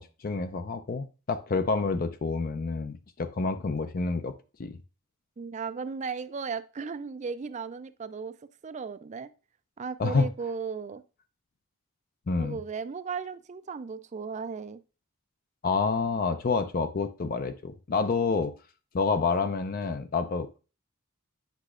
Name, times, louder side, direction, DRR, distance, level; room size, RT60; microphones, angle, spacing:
voice 1, 0.0-4.3 4.6-4.8 10.0-10.3 12.3-12.6 15.6-18.5 18.9-20.6, left 4 dB, 40° left, 10 dB, 0.5 m, -28 dB
voice 2, 5.4-8.4 8.6-9.3 9.8-11.0 12.4-14.8, right 5 dB, 35° right, 13 dB, 0.4 m, -36 dB
8.2 x 5.7 x 2.4 m, 0.33 s
head